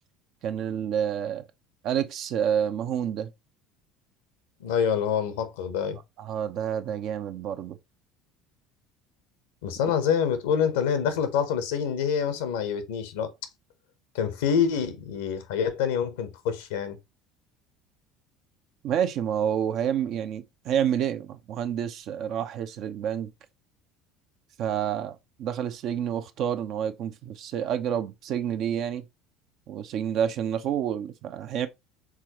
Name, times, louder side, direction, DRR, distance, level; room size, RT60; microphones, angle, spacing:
voice 1, 0.4-1.4 1.8-3.3 6.2-7.8 18.8-23.3 24.6-29.0 29.7-31.7, right 9 dB, 55° right, 0.7 m, -28 dB
voice 2, 4.6-6.0 9.6-13.3 14.1-17.0, left 7 dB, 75° left, 0.9 m, -26 dB
4.8 x 3.8 x 2.9 m
hypercardioid pair, 65°, 0 cm